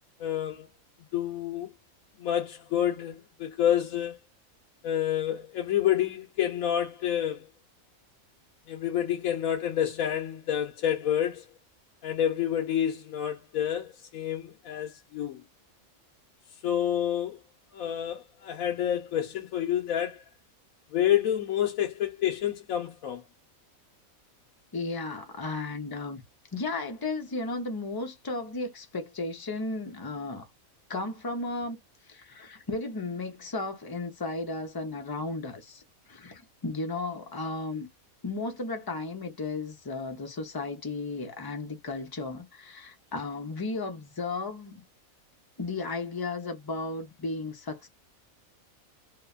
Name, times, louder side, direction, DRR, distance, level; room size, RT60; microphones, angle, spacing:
voice 1, 0.2-0.7 1.1-1.7 2.2-4.2 4.8-7.5 8.7-11.5 12.0-15.4 16.6-17.4 17.7-20.2 20.9-23.2, left 10 dB, 75° left, 1.1 m, -28 dB
voice 2, 24.7-26.2 26.5-30.5 30.9-31.8 32.1-35.8 36.1-37.9 38.2-44.8 45.6-47.9, left 3 dB, 30° left, 0.4 m, -34 dB
3.0 x 2.0 x 2.3 m
omnidirectional pair, 1.5 m